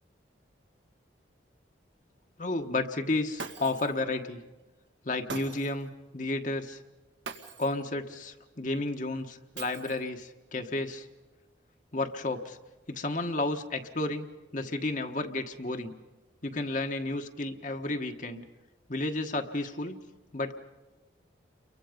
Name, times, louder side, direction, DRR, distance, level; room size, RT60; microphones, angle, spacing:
voice 1, 2.4-4.4 5.0-6.8 7.6-11.1 11.9-12.6 12.9-14.3 14.5-15.9 16.4-18.5 18.9-20.0 20.3-20.5, left 2 dB, 45° left, 5 dB, 1.4 m, -32 dB
Shatter, 3.4-4.0 5.3-5.9 7.2-7.8 9.6-10.2, right 4 dB, 85° right, 2.0 m, -42 dB
30.0 x 23.5 x 5.2 m, 1.1 s
head